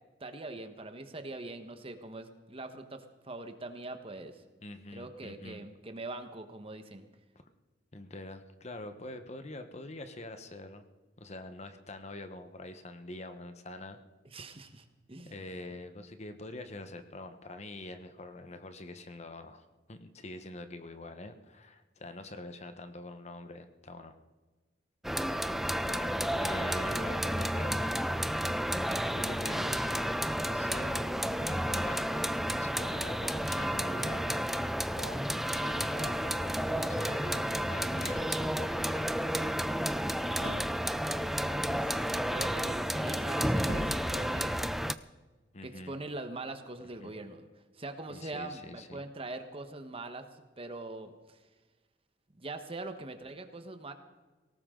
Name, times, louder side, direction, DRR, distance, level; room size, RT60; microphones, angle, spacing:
voice 1, 0.2-4.4 4.9-7.0 14.2-15.4 41.6-44.7 45.6-47.5 47.7-51.4 52.3-53.9, right 2 dB, 35° right, 7 dB, 1.3 m, -43 dB
voice 2, 4.6-5.6 7.9-10.8 11.2-14.0 15.3-24.1 25.8-27.9 29.1-29.9 30.5-34.4 34.9-39.1 45.5-45.9 47.0-47.1 48.1-49.0, left 2 dB, 40° left, 8 dB, 1.1 m, -45 dB
sound 1, 25.0-44.9, equal, ahead, 0.4 m, -31 dB
sound 2, 37.9-38.8 40.4-41.3 43.6-44.6, equal, 65° left, 7.1 m, -42 dB
19.5 x 18.0 x 3.8 m, 1.2 s
head